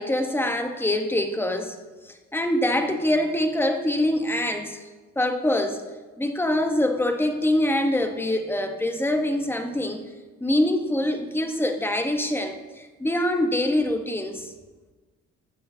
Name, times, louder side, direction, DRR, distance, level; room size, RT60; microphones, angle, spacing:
voice 1, 0.0-1.8 2.0-4.8 5.2-5.8 6.2-10.0 10.4-14.5, left 1 dB, 5° left, 5 dB, 1.0 m, -24 dB
14.0 x 9.2 x 2.7 m, 1.3 s
cardioid pair, 90°, 30 cm